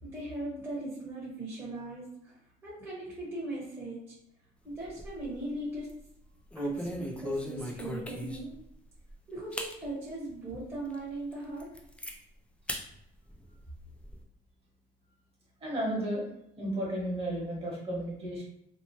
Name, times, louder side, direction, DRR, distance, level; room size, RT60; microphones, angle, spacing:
voice 1, 0.0-4.0 4.6-5.9 6.5-8.5 9.3-11.7, right 2 dB, 15° right, -8 dB, 1.1 m, -39 dB
sound 1, 4.7-5.4 5.8-6.0 6.5-8.6 9.1-9.2 9.5-9.8 10.3-10.4 10.9-11.0 11.3-12.1 12.7-12.9 13.2-14.2, left 1 dB, 5° left, 0.3 m, -38 dB
voice 2, 15.6-16.3 16.6-18.4, right 1 dB, 35° right, -4 dB, 1.3 m, -33 dB
2.9 x 2.1 x 2.8 m, 0.78 s
cardioid pair, 110°, 17 cm